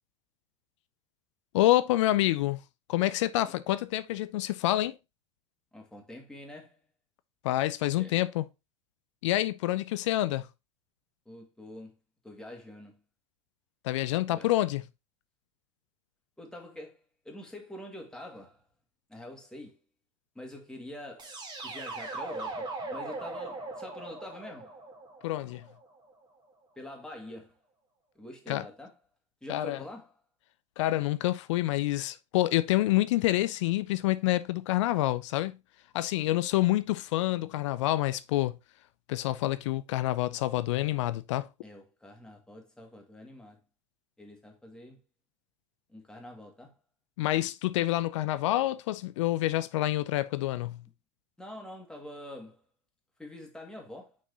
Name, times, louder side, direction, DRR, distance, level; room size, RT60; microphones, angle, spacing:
voice 1, 1.5-2.6 2.9-5.0 7.4-8.4 9.2-10.5 13.8-14.8 25.2-25.6 28.5-28.6 29.5-29.8 30.8-35.6 35.9-38.6 39.1-41.5 47.2-50.8, left 15 dB, 70° left, 0.5 m, -27 dB
voice 2, 5.7-6.8 8.0-8.2 11.3-12.0 12.2-13.0 14.3-14.5 16.4-17.0 17.2-18.6 19.1-19.8 20.4-24.8 26.8-27.5 28.2-28.9 29.4-30.1 41.6-43.6 44.2-45.0 45.9-46.8 51.4-52.6 53.2-54.2, left 1 dB, 5° left, 2.2 m, -45 dB
sound 1, 21.2-26.1, right 3 dB, 25° right, 2.1 m, -40 dB
6.3 x 4.3 x 3.9 m
hypercardioid pair, 90°, 16 cm